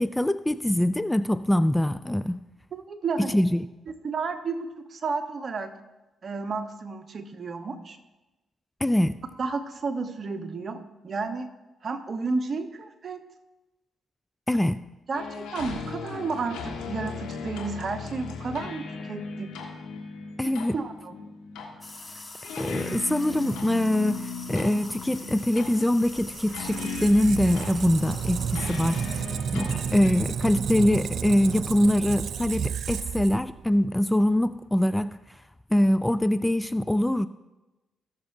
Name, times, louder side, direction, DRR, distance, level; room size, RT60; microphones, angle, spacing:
voice 1, 0.0-2.4 3.2-3.7 8.8-9.2 14.5-14.8 20.4-20.8 22.6-24.2 24.5-29.2 29.5-35.2 35.7-37.3, left 1 dB, 10° left, 14 dB, 0.4 m, -23 dB
voice 2, 2.7-3.4 4.0-5.8 6.2-8.0 9.4-11.5 11.8-13.2 15.1-19.5 20.4-21.3, right 4 dB, 50° right, 7 dB, 1.1 m, -32 dB
sound 1, 15.1-30.1, left 5 dB, 80° left, 1.6 m, -38 dB
sound 2, 21.8-29.2, left 2 dB, 25° left, 1.5 m, -44 dB
Squeak, 26.1-33.8, right 8 dB, 65° right, 0.4 m, -32 dB
17.5 x 6.8 x 2.7 m, 1.1 s
hypercardioid pair, 45°, 0 cm